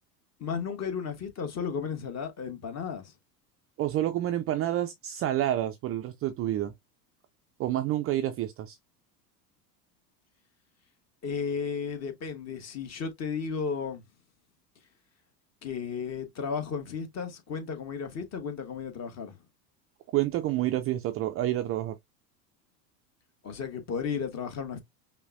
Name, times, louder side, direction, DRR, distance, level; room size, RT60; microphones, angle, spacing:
voice 1, 0.4-3.1 11.2-14.0 15.6-19.3 23.4-24.8, left 6 dB, 30° left, 1.2 m, -34 dB
voice 2, 3.8-6.7 7.6-8.8 20.1-22.0, right 13 dB, 30° right, 0.4 m, -28 dB
5.4 x 2.2 x 2.5 m
hypercardioid pair, 85°, 49 cm